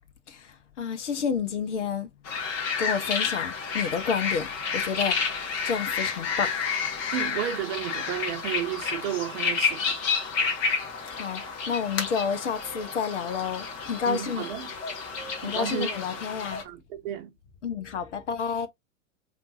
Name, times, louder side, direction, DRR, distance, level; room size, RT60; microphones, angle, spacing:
voice 1, 0.3-2.1 2.8-5.2 5.6-6.5 11.1-14.4 15.4-16.6 17.6-18.7, left 6 dB, 65° left, 1.2 m, -30 dB
sound 1, 2.3-16.6, left 5 dB, 35° left, 1.7 m, -30 dB
voice 2, 7.1-10.2 14.1-14.7 15.4-16.2 16.6-17.3, right 11 dB, 50° right, 0.8 m, -33 dB
5.2 x 3.3 x 2.7 m
figure-of-eight pair, 90°, 38 cm